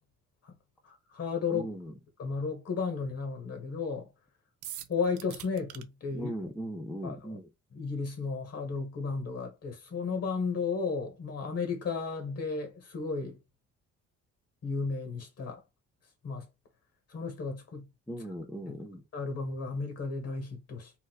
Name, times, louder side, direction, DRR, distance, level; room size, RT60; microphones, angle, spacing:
voice 1, 0.8-1.7 2.2-4.1 4.9-6.3 7.0-7.4 7.7-13.4 14.6-15.6 16.2-16.5 17.1-17.9 18.2-18.3 18.6-18.8 19.1-20.9, left 4 dB, 55° left, 1.3 m, -34 dB
voice 2, 1.5-1.9 6.1-7.4 18.1-19.0, equal, 5° left, 0.6 m, -38 dB
sound 1, 4.6-5.8, right 12 dB, 75° right, 0.5 m, -43 dB
2.6 x 2.1 x 3.9 m
cardioid pair, 90°, 30 cm